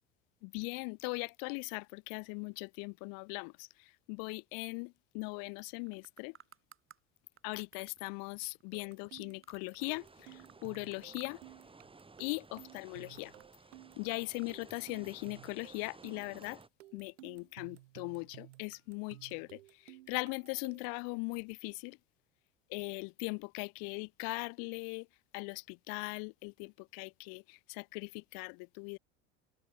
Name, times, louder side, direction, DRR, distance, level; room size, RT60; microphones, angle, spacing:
voice 1, 0.4-6.4 7.4-11.4 12.2-13.3 14.0-16.6 16.9-22.0 22.7-25.1 25.3-29.0, left 37 dB, 65° left, 0.8 m, -40 dB
sound 1, 5.7-7.0 7.4-10.0 10.3-11.6 11.9-12.3 12.7-14.5, right 8 dB, 35° right, 2.8 m, -61 dB
sound 2, 8.7-21.0, right 16 dB, 85° right, 0.9 m, -56 dB
sound 3, 9.8-16.7, right 3 dB, 15° right, 2.1 m, -57 dB
open air
hypercardioid pair, 80°, 37 cm